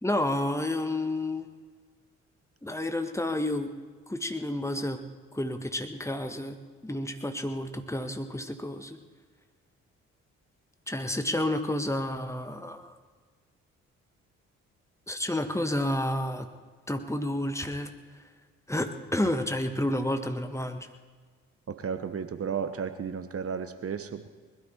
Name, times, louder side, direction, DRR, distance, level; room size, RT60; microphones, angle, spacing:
voice 1, 0.0-1.5 2.6-3.7 4.1-5.0 5.3-6.6 6.8-9.0 10.9-12.9 15.1-16.5 16.9-17.9 18.7-20.9, left 1 dB, 10° left, 6 dB, 1.6 m, -30 dB
voice 2, 21.7-24.3, right 6 dB, 40° right, 10 dB, 1.1 m, -33 dB
20.5 x 12.5 x 4.5 m, 1.5 s
hypercardioid pair, 40°, 37 cm